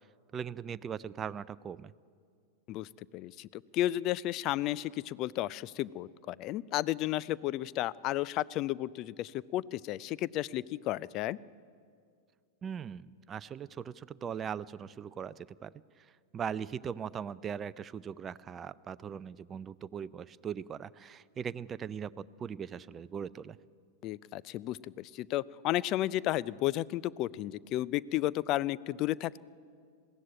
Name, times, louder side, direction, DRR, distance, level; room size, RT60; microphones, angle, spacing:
voice 1, 0.3-1.9 12.6-15.7 16.3-23.6, right 7 dB, 25° right, 16 dB, 0.5 m, -40 dB
voice 2, 3.1-11.4 24.0-29.4, left 15 dB, 40° left, 20 dB, 0.4 m, -33 dB
21.0 x 16.0 x 9.1 m, 2.2 s
figure-of-eight pair, 95°, 0 cm